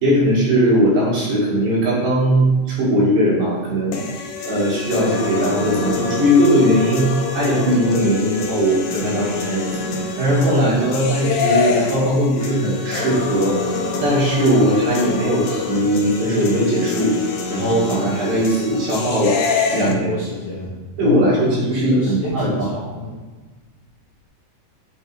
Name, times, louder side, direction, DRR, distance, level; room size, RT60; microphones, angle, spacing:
voice 1, 0.0-4.0 4.5-9.6 10.2-13.6 14.0-17.1 17.5-19.4 19.7-20.1 21.0-22.8, equal, 70° right, -7 dB, 4.0 m, -19 dB
sound 1, 3.9-19.9, left 4 dB, 90° left, 2.7 m, -25 dB
voice 2, 19.9-20.7 21.0-23.2, left 3 dB, 70° left, -5 dB, 1.5 m, -28 dB
7.8 x 4.3 x 4.5 m, 1.3 s
omnidirectional pair, 4.1 m